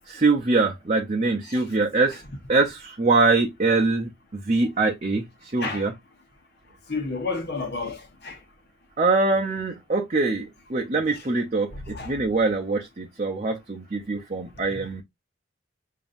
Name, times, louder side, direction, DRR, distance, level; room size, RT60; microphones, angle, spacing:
voice 1, 0.1-2.2 2.5-5.9 9.0-15.0, right 3 dB, 35° right, 0.7 m, -23 dB
voice 2, 5.6-5.9 6.9-8.4 11.7-12.2 14.7-14.8, left 3 dB, 55° left, 1.3 m, -31 dB
7.0 x 2.7 x 2.6 m
head